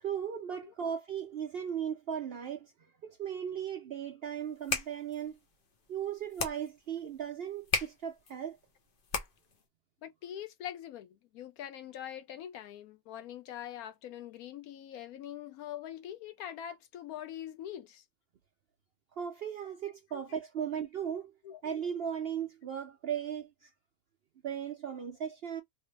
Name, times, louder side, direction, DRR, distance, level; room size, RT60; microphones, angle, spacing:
voice 1, 0.0-5.4 5.9-8.6 19.2-21.3 21.6-23.7 24.4-25.6, right 8 dB, 65° right, 0.6 m, -37 dB
sound 1, 4.4-9.6, left 4 dB, 50° left, 0.7 m, -38 dB
voice 2, 10.0-18.0 20.1-20.2 21.4-21.6, left 10 dB, 80° left, 1.1 m, -43 dB
3.1 x 2.0 x 3.2 m
omnidirectional pair, 1.5 m